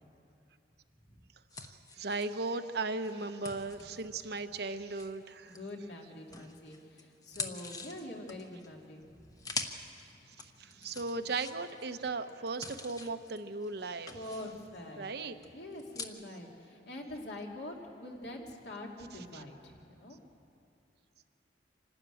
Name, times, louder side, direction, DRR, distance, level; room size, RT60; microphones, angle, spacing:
sound 1, 1.5-5.9 6.3-16.0, left 3 dB, 20° left, 1.0 m, -46 dB
voice 1, 1.6-5.6 10.4-14.1 15.0-15.3 19.3-19.4, right 3 dB, 60° right, 8 dB, 0.8 m, -37 dB
voice 2, 5.4-9.0 14.1-15.0 15.5-20.2, left 1 dB, 65° left, 0 dB, 2.7 m, -45 dB
26.5 x 12.5 x 9.1 m, 2.6 s
head